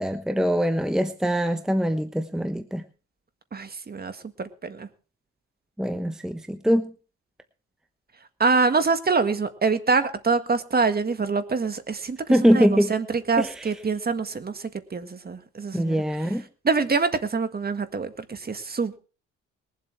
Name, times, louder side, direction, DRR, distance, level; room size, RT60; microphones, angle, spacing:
voice 1, 0.0-2.8 5.8-6.9 12.3-12.9 13.4-13.7 15.7-16.4, equal, ahead, 8 dB, 1.0 m, -23 dB
voice 2, 3.5-4.9 8.4-16.0 16.6-19.0, right 4 dB, 30° right, 10 dB, 1.7 m, -25 dB
21.0 x 7.8 x 4.6 m, 0.36 s
cardioid pair, 90°, 30 cm